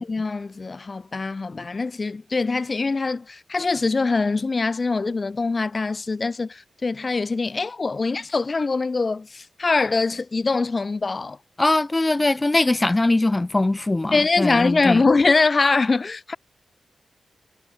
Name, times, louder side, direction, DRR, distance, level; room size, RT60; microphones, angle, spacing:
voice 1, 0.0-11.4 14.1-16.4, left 3 dB, 35° left, 1.3 m, -23 dB
voice 2, 11.6-15.0, left 2 dB, 20° left, 1.2 m, -21 dB
cardioid pair, 85°, 0 cm